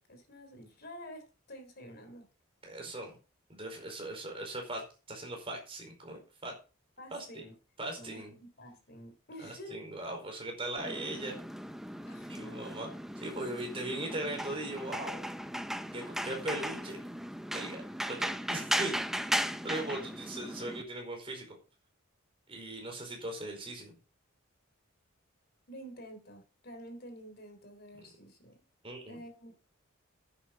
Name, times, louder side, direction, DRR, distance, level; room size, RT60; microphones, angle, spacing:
voice 1, 0.0-2.3 7.0-7.5 7.9-9.8 12.0-12.3 25.7-28.6 29.1-29.5, equal, 50° left, 6 dB, 3.6 m, -49 dB
voice 2, 2.6-3.1 3.5-4.8 5.1-6.5 7.1-7.2 7.8-8.3 9.4-11.4 12.3-12.9 13.2-15.3 15.9-17.0 17.5-17.8 18.1-19.0 19.3-21.6 22.5-23.9 28.8-29.2, right 1 dB, 25° right, 2 dB, 4.7 m, -39 dB
sound 1, 10.8-20.8, equal, ahead, 0.6 m, -37 dB
10.0 x 9.3 x 5.3 m, 0.33 s
head